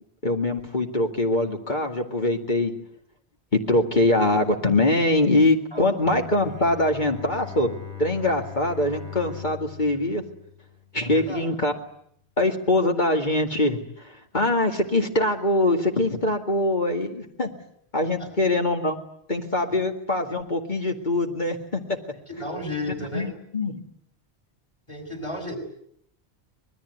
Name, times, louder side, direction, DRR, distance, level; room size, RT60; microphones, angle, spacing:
voice 1, 0.2-2.7 3.5-7.7 8.0-10.2 10.9-11.7 12.4-17.5 17.9-19.0 19.3-21.8 23.1-23.8, left 2 dB, 45° left, 3 dB, 2.3 m, -23 dB
Bowed string instrument, 6.0-11.3, left 9 dB, 85° left, 8.2 m, -40 dB
voice 2, 11.0-11.5 18.0-18.3 22.3-23.3 24.9-25.6, left 1 dB, 25° left, 6 dB, 6.5 m, -33 dB
26.0 x 21.0 x 9.4 m, 0.70 s
omnidirectional pair, 1.1 m